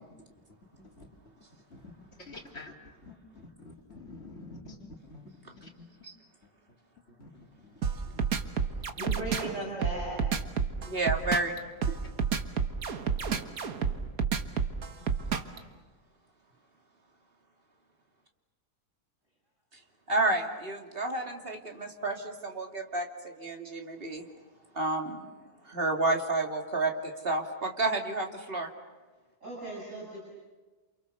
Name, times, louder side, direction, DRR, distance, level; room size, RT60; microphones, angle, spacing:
voice 1, 2.3-2.7 3.1-3.2 3.7-5.2 7.2-7.3, left 2 dB, 45° left, 0 dB, 3.6 m, -46 dB
sound 1, 7.8-15.6, right 6 dB, 65° right, 1.8 m, -29 dB
voice 2, 8.9-10.3 29.4-30.2, right 2 dB, 50° right, -4 dB, 6.8 m, -37 dB
voice 3, 10.8-11.6 11.9-12.0 20.1-24.2 24.7-25.3 25.6-28.7, right 2 dB, 35° right, 3 dB, 2.7 m, -30 dB
28.5 x 28.0 x 6.9 m, 1.3 s
omnidirectional pair, 1.6 m